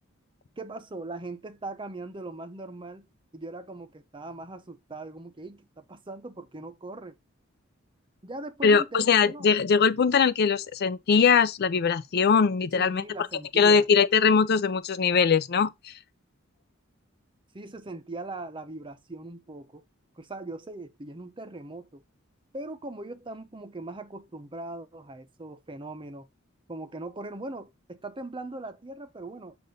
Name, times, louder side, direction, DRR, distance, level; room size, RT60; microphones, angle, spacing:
voice 1, 0.6-3.1 3.3-7.2 8.2-9.5 12.7-13.9 17.5-19.8 20.2-22.0 22.5-26.3 26.7-29.6, right 2 dB, 25° right, 0.7 m, -40 dB
voice 2, 8.6-13.0 13.6-15.9, left 5 dB, 50° left, 0.4 m, -21 dB
7.5 x 2.6 x 5.1 m
head